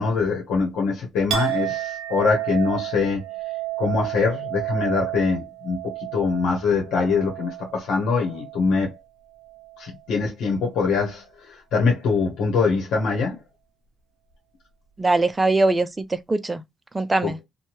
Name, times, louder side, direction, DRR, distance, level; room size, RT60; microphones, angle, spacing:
voice 1, 0.0-3.2 3.8-5.8 6.1-8.9 9.8-11.2 11.7-13.4 17.2-17.3, left 4 dB, 80° left, 1.0 m, -23 dB
Chink clink, 1.3-9.0 9.3-10.0, right 15 dB, 75° right, 0.6 m, -31 dB
voice 2, 15.0-16.6 16.9-17.4, right 2 dB, 20° right, 0.5 m, -21 dB
2.7 x 2.2 x 3.0 m
cardioid pair, 90°, 0 cm